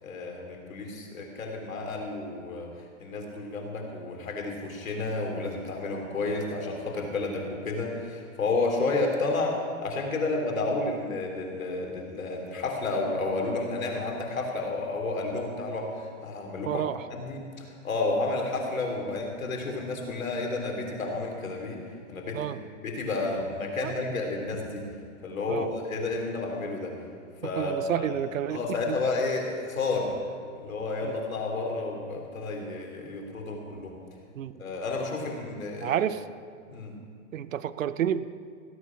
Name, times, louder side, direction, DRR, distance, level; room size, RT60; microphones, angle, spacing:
voice 1, 0.0-2.7 3.0-21.8 22.1-22.5 22.8-24.9 25.2-26.9 27.4-28.1 28.5-30.2 30.5-33.9 34.6-36.0 36.7-36.9, left 3 dB, 85° left, 1 dB, 3.6 m, -31 dB
voice 2, 16.7-17.0 22.3-22.6 23.8-24.2 25.5-25.7 27.6-29.0 31.0-31.2 34.4-34.5 35.8-36.2 37.3-38.3, right 10 dB, 75° right, 15 dB, 0.8 m, -30 dB
16.5 x 9.7 x 6.0 m, 2.1 s
hypercardioid pair, 145°, 39 cm